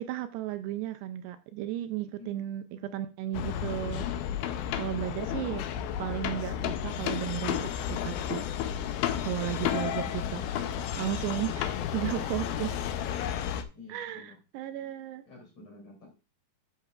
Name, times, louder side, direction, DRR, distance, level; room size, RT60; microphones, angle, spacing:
voice 1, 0.0-4.1 4.8-5.6 6.0-8.4 9.2-10.7 11.0-12.9 13.9-15.2, right 13 dB, 85° right, 2.5 m, -34 dB
voice 2, 2.0-3.0 11.5-12.2 13.7-14.4 15.3-16.1, left 2 dB, 40° left, 3.6 m, -51 dB
sound 1, 3.3-13.6, left 9 dB, 85° left, 2.1 m, -32 dB
12.5 x 6.7 x 2.3 m
omnidirectional pair, 4.9 m